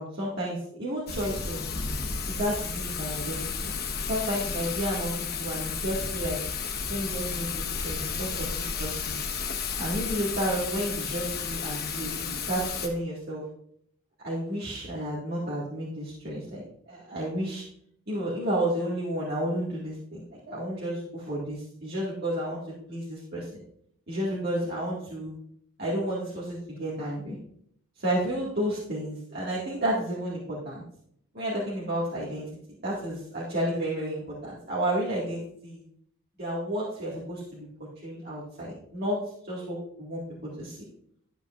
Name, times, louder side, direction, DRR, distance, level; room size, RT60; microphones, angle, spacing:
voice 1, 0.0-1.7 2.3-3.7 4.1-5.1 5.4-6.4 6.9-9.2 9.8-13.5 14.2-17.6 18.1-22.6 22.9-23.6 24.1-25.3 25.8-27.4 28.0-30.8 31.3-32.5 32.8-35.8 36.4-37.7 38.0-40.8, right 1 dB, 45° right, -7 dB, 2.1 m, -31 dB
Thunder / Rain, 1.1-12.9, left 5 dB, 45° left, 1.3 m, -32 dB
12.5 x 8.2 x 2.5 m, 0.69 s
head